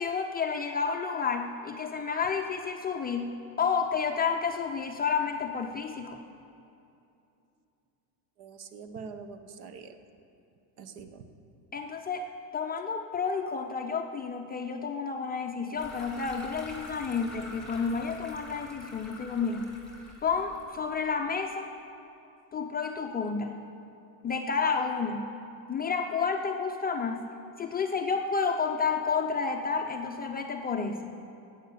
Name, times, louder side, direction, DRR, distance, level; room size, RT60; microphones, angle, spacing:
voice 1, 0.0-3.3 3.6-6.2 11.7-19.7 20.2-21.7 22.5-23.6 24.2-25.3 25.7-27.2 27.6-31.1, left 5 dB, 20° left, 3 dB, 0.5 m, -30 dB
voice 2, 8.4-10.0 10.8-11.3, right 5 dB, 50° right, 9 dB, 1.1 m, -44 dB
sound 1, 15.8-21.1, left 1 dB, ahead, 2.8 m, -46 dB
14.0 x 9.5 x 6.8 m, 2.7 s
supercardioid pair, 120°, 50 cm